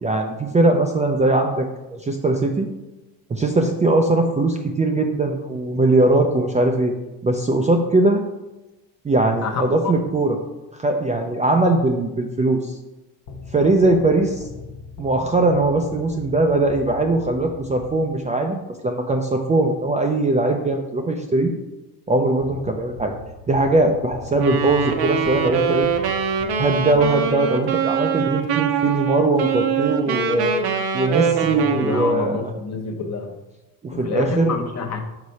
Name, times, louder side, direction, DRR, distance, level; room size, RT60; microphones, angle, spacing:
voice 1, 0.0-2.7 3.3-6.9 7.2-8.2 9.0-10.4 10.8-12.8 13.5-14.5 15.0-21.5 22.1-23.1 23.5-25.9 26.6-30.6 30.9-32.4 33.8-34.6, right 2 dB, 15° right, 2 dB, 0.4 m, -20 dB
voice 2, 9.4-10.1 31.3-33.3 33.9-35.0, left 4 dB, 40° left, 4 dB, 0.9 m, -28 dB
sound 1, 13.3-18.4 22.4-27.6, left 3 dB, 80° left, 1.0 m, -40 dB
Wind instrument woodwind instrument, 24.3-32.3, right 7 dB, 60° right, 0.8 m, -23 dB
5.2 x 4.9 x 4.1 m, 1.0 s
cardioid pair, 105°, 43 cm